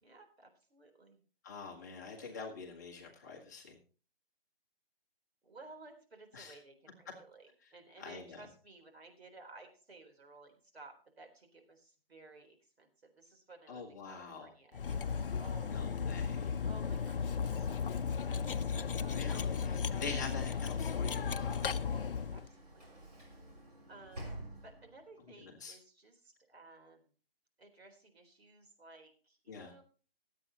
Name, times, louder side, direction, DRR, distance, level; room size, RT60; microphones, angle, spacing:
voice 1, 0.0-1.2 5.4-15.8 16.7-18.0 19.0-19.3 20.0-20.2 21.9-23.1 23.9-27.1 27.6-29.8, right 2 dB, 85° right, 5 dB, 3.8 m, -56 dB
voice 2, 1.4-3.8 6.3-6.5 8.0-8.4 13.7-14.5 15.6-16.5 19.1-21.8 25.6-25.7 29.5-29.7, left 4 dB, 20° left, -1 dB, 1.4 m, -45 dB
Cutlery silverware, 14.7-22.5, left 6 dB, 60° left, 0.7 m, -35 dB
Sliding door / Slam, 20.6-25.2, right 1 dB, 40° right, 3.8 m, -51 dB
21.0 x 8.4 x 2.9 m, 0.38 s
hypercardioid pair, 175°, 30 cm